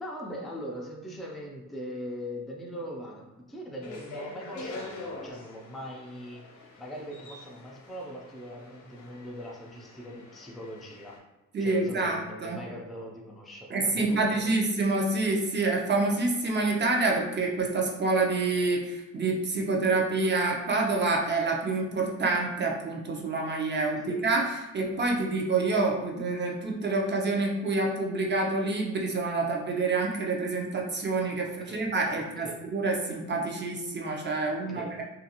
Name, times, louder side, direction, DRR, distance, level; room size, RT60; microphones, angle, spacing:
voice 1, 0.0-6.4 6.8-11.2 11.6-14.5 24.0-24.3 31.4-32.7 34.4-35.0, equal, ahead, -1 dB, 0.4 m, -41 dB
sound 1, 3.8-11.2, left 2 dB, 75° left, 0.7 m, -45 dB
voice 2, 11.5-12.6 13.7-35.0, right 3 dB, 35° right, 0 dB, 0.7 m, -27 dB
2.5 x 2.3 x 2.8 m, 1.0 s
cardioid pair, 90°, 30 cm